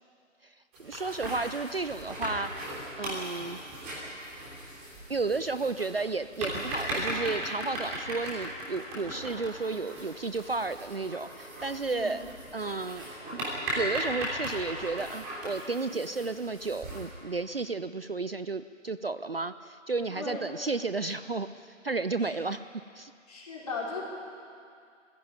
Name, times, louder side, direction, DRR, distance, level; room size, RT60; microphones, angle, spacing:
sound 1, 0.7-17.1, right 1 dB, 10° right, 3.1 m, -37 dB
voice 1, 0.8-2.5 3.0-3.6 5.1-13.1 13.3-13.5 13.7-21.5 21.8-22.6 23.0-23.1, right 3 dB, 50° right, 12 dB, 0.6 m, -32 dB
voice 2, 20.1-20.4 22.2-22.3 23.3-24.0, left 4 dB, 30° left, -4 dB, 4.5 m, -37 dB
19.5 x 16.0 x 9.6 m, 2.3 s
figure-of-eight pair, 160°, 39 cm